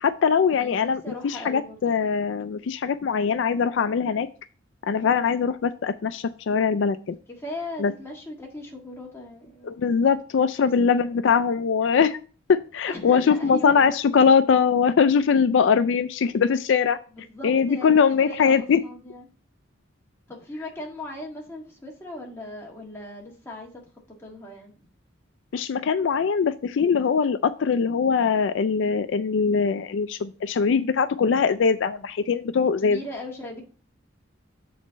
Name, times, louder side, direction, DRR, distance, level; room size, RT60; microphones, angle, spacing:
voice 1, 0.0-4.3 4.8-7.2 7.8-7.9 9.6-12.2 12.5-17.0 17.4-18.8 25.5-33.0, left 6 dB, 70° left, 12 dB, 0.4 m, -22 dB
voice 2, 0.6-1.8 7.3-9.8 10.6-10.7 12.9-13.7 17.1-19.3 20.3-23.7 24.2-24.9 32.8-33.6, left 1 dB, 15° left, -2 dB, 1.6 m, -38 dB
7.2 x 4.2 x 5.1 m, 0.38 s
head